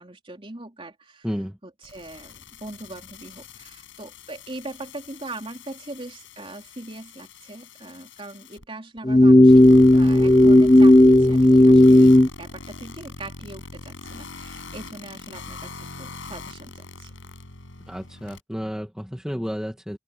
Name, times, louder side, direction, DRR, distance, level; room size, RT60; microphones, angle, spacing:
voice 1, 0.0-1.3 1.6-12.1 12.4-17.1, right 2 dB, 25° right, 3.5 m, -40 dB
voice 2, 1.2-1.6 17.9-20.0, equal, 5° right, 1.8 m, -31 dB
sound 1, 1.8-8.6 9.0-9.1 9.5-18.4, left 3 dB, 70° left, 7.2 m, -42 dB
sound 2, 9.0-12.3, left 1 dB, 20° left, 0.5 m, -12 dB
open air
head